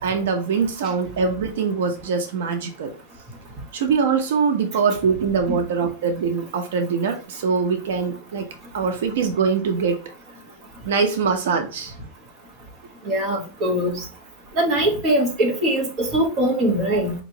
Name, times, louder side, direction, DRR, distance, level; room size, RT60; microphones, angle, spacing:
voice 1, 0.0-2.9 3.7-8.5 8.7-10.0 10.8-11.9, right 5 dB, 85° right, 6 dB, 0.7 m, -23 dB
voice 2, 13.0-14.0 14.6-17.1, right 1 dB, 30° right, 0 dB, 1.2 m, -22 dB
5.0 x 3.0 x 2.7 m, 0.36 s
supercardioid pair, 170°, 0 cm